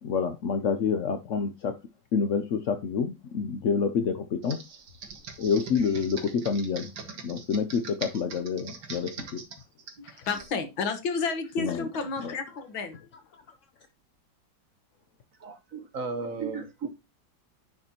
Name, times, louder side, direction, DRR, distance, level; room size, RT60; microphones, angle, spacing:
voice 1, 0.0-1.7 2.1-4.6 5.4-6.9 7.2-9.4 11.6-11.9 12.2-12.3, left 6 dB, 65° left, 0.7 m, -28 dB
Computer keyboard, 4.4-10.5, right 5 dB, 70° right, 2.3 m, -42 dB
voice 2, 10.0-13.0, left 4 dB, 80° left, 2.2 m, -31 dB
voice 3, 15.4-16.9, right 4 dB, 50° right, 1.2 m, -34 dB
10.5 x 6.4 x 2.9 m
omnidirectional pair, 2.1 m